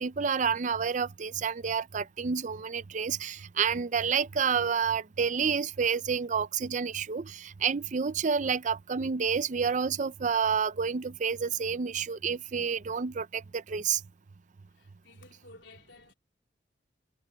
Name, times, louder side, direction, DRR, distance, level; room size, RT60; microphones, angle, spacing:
voice 1, 0.0-14.0, right 6 dB, 45° right, 0.5 m, -29 dB
voice 2, 14.7-16.1, left 2 dB, 85° left, 3.8 m, -54 dB
head